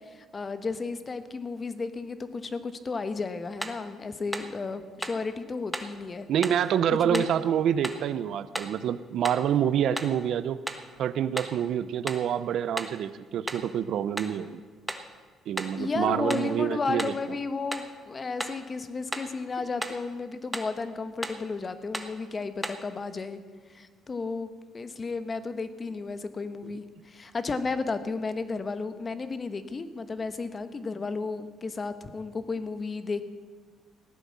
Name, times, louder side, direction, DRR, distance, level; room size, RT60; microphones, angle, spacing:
voice 1, 0.0-6.3 6.9-7.3 15.8-23.4 23.7-33.2, left 4 dB, 35° left, 11 dB, 1.1 m, -33 dB
sound 1, 3.6-3.8 4.3-4.6 5.0-5.3 5.7-6.0 6.4-6.7 7.1-7.4 7.8-8.1 8.6-8.8 9.3-9.5 10.0-10.2 10.7-10.9 11.4-11.6 12.1-12.3 12.8-13.0 13.5-13.7 14.2-14.4 14.9-15.1 15.6-15.8 16.3-16.5 17.0-17.2 17.7-17.9 18.4-18.6 19.1-19.4 19.8-20.0 20.5-20.8 21.2-21.5 21.9-22.2 22.6-22.9, right 1 dB, 5° right, 1.3 m, -35 dB
voice 2, 6.3-10.6 11.0-14.6 15.5-17.1, right 9 dB, 70° right, 15 dB, 0.6 m, -27 dB
16.0 x 9.1 x 7.3 m, 1.5 s
cardioid pair, 90°, 0 cm